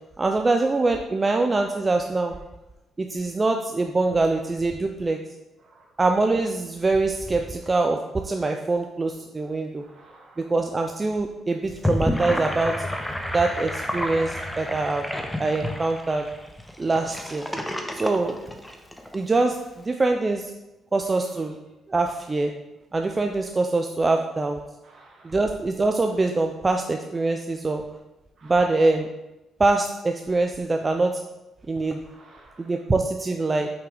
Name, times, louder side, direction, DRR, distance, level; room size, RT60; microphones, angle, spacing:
voice 1, 0.2-2.3 3.0-5.2 6.0-9.8 10.4-12.7 13.3-15.1 15.4-16.3 16.8-17.5 17.9-18.6 19.1-20.5 20.9-21.6 21.9-22.5 22.9-24.6 25.2-27.8 28.4-29.1 29.6-31.1 31.7-32.0 32.6-33.7, right 3 dB, 25° right, 4 dB, 0.4 m, -24 dB
voice 2, 9.8-10.4 24.8-25.3 28.4-28.5 32.1-32.7, right 2 dB, 55° right, -2 dB, 1.7 m, -53 dB
Gurgling / Sink (filling or washing), 11.6-19.2, left 1 dB, 5° left, 0.7 m, -30 dB
5.8 x 5.3 x 3.4 m, 0.99 s
cardioid pair, 90°, 0 cm